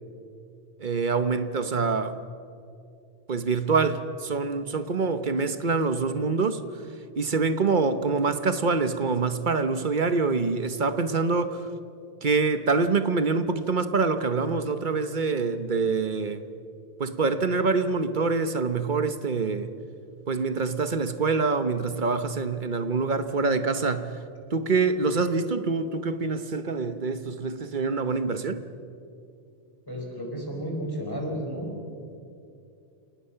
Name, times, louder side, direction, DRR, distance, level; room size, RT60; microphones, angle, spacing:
voice 1, 0.8-2.2 3.3-6.8 7.2-11.7 12.2-16.4 17.0-19.7 20.3-24.2 24.5-28.6, right 4 dB, 45° right, 1.0 m, -25 dB
voice 2, 29.9-31.7, equal, 15° left, 4.6 m, -32 dB
29.5 x 18.5 x 5.7 m
omnidirectional pair, 1.3 m